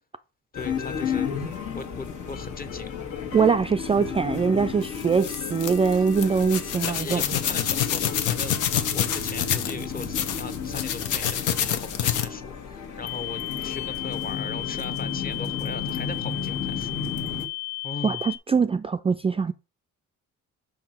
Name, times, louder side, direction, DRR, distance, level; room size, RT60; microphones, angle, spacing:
sound 1, 0.5-17.5, left 6 dB, 70° left, 1.6 m, -33 dB
voice 1, 0.5-1.5 1.7-2.9 5.9-6.1 6.8-16.9 17.8-18.2, left 3 dB, 30° left, 0.9 m, -39 dB
voice 2, 3.3-7.2 18.0-19.5, right 5 dB, 20° right, 0.3 m, -23 dB
sound 2, 4.8-12.3, left 10 dB, 85° left, 0.9 m, -27 dB
sound 3, 13.0-18.4, left 21 dB, 55° left, 1.4 m, -34 dB
5.9 x 5.5 x 4.4 m
cardioid pair, 90°, 30 cm